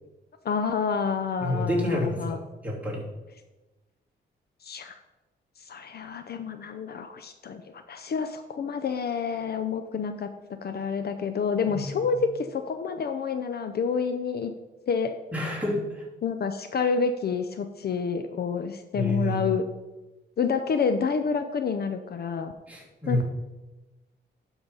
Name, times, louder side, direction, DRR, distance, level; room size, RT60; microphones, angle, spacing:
voice 1, 0.4-2.4 4.6-5.0 5.6-14.5 14.9-15.2 16.2-19.6 20.4-22.5 23.1-23.2, left 5 dB, 55° left, 8 dB, 0.6 m, -28 dB
voice 2, 1.4-3.0 11.7-12.1 15.3-16.1 18.9-19.4 22.7-23.2, left 1 dB, 5° right, -5 dB, 3.1 m, -29 dB
11.5 x 3.9 x 5.4 m, 1.1 s
cardioid pair, 110°, 19 cm